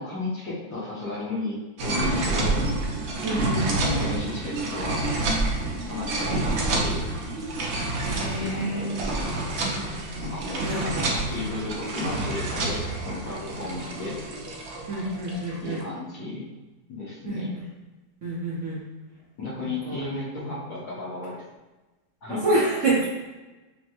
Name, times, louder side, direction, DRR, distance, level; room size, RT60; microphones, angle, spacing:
voice 1, 0.0-2.6 3.7-5.1 5.9-7.0 8.2-9.3 10.3-14.2 15.6-16.4 16.9-17.5 19.4-21.4 22.2-22.4, left 2 dB, 55° left, -6 dB, 1.3 m, -34 dB
sound 1, 1.8-15.7, right 2 dB, 80° right, 0.6 m, -28 dB
voice 2, 3.2-3.7 8.0-8.9 10.6-11.2 14.9-15.8 17.3-17.6 18.2-18.8 19.6-20.0 22.3-23.0, right 2 dB, 55° right, -7 dB, 1.0 m, -27 dB
5.6 x 2.1 x 2.9 m, 1.1 s
omnidirectional pair, 2.0 m